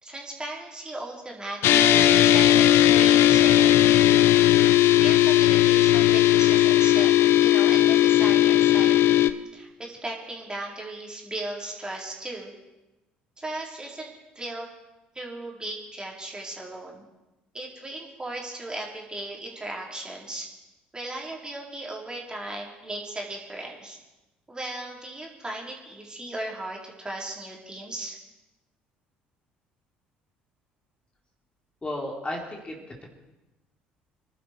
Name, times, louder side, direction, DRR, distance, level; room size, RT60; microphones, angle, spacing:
voice 1, 0.0-4.1 4.3-4.5 4.9-7.1 7.4-9.3 9.5-12.5 13.4-14.7 15.1-17.0 17.5-20.5 20.9-24.0 24.5-28.2, right 1 dB, 15° right, -1 dB, 4.1 m, -36 dB
sound 1, 1.6-9.3, left 13 dB, 60° left, 0.7 m, -17 dB
voice 2, 31.8-33.1, left 1 dB, 20° left, 0 dB, 3.4 m, -34 dB
26.5 x 12.0 x 4.6 m, 1.0 s
figure-of-eight pair, 55°, 5 cm